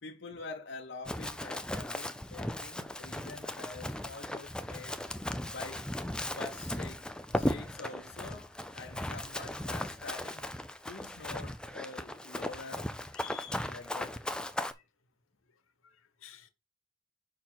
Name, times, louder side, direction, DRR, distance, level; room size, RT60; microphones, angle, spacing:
voice 1, 0.0-5.0 5.5-5.9 6.3-7.0 7.3-10.4 10.9-12.9 13.7-14.2, left 3 dB, 55° left, 0.8 m, -46 dB
Run, 1.0-14.7, left 1 dB, 5° left, 0.4 m, -37 dB
voice 2, 13.1-13.7 14.5-14.8 15.8-16.5, left 10 dB, 75° left, 1.1 m, -50 dB
5.5 x 4.5 x 6.1 m
head